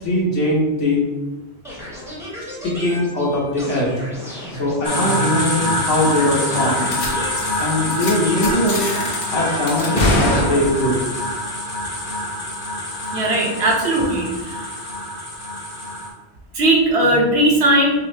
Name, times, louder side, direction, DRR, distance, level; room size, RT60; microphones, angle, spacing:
voice 1, 0.0-1.0 2.6-3.9 4.6-6.8 7.6-8.9 9.3-11.0, left 1 dB, 80° left, -4 dB, 1.5 m, -20 dB
sound 1, 1.6-7.9 8.2-10.4, right 1 dB, 5° right, 0.9 m, -33 dB
sound 2, 4.8-16.1, left 1 dB, 25° left, 0.6 m, -25 dB
sound 3, 6.9-7.1 7.3-7.6 7.9-8.1 8.4-9.2 9.7-11.0, left 1 dB, 55° left, 1.0 m, -22 dB
voice 2, 13.1-14.6 16.5-18.0, right 1 dB, 65° right, -2 dB, 1.1 m, -18 dB
5.4 x 2.0 x 3.3 m, 1.2 s
omnidirectional pair, 1.2 m